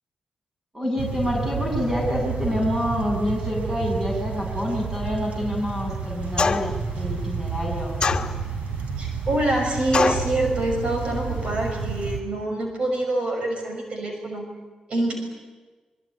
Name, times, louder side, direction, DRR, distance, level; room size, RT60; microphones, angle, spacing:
voice 1, 0.7-8.0, equal, 20° right, -1 dB, 7.7 m, -27 dB
sound 1, 1.0-12.2, right 5 dB, 85° right, 3.5 m, -30 dB
sound 2, 6.4-6.8 8.0-8.7 9.9-10.3, left 5 dB, 45° left, 1.5 m, -23 dB
voice 2, 9.0-14.5 14.9-15.1, right 1 dB, 55° right, 3 dB, 6.0 m, -25 dB
24.5 x 22.5 x 9.7 m, 1.3 s
cardioid pair, 95°, 2 cm